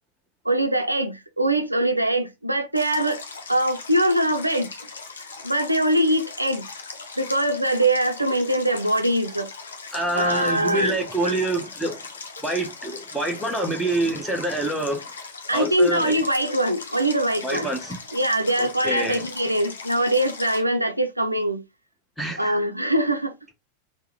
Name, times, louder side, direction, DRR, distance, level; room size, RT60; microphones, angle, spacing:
voice 1, 0.5-3.2 3.5-4.7 5.4-6.7 7.2-9.5 10.2-11.0 11.2-11.4 15.5-17.7 18.1-21.6 22.4-23.5, right 1 dB, 85° right, 0.4 m, -22 dB
Stream, 2.8-20.6, left 4 dB, 70° left, 0.6 m, -39 dB
voice 2, 9.9-12.0 12.4-15.1 15.5-16.1 17.4-18.0 18.6-19.3 22.2-22.5, right 1 dB, ahead, 0.9 m, -26 dB
3.5 x 2.0 x 3.0 m
figure-of-eight pair, 90°, 0 cm